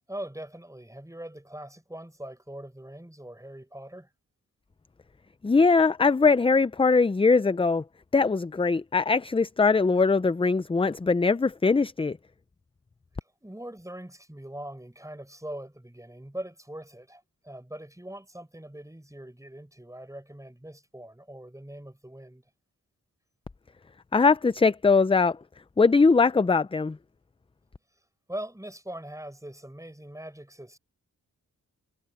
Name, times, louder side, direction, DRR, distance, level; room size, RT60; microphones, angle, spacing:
voice 1, 0.1-4.1 13.4-22.4 28.3-30.8, right 1 dB, 10° right, 6.9 m, -41 dB
voice 2, 5.4-7.8 8.1-12.2 24.1-25.4 25.8-27.0, left 4 dB, 15° left, 0.5 m, -21 dB
cardioid pair, 60°, 34 cm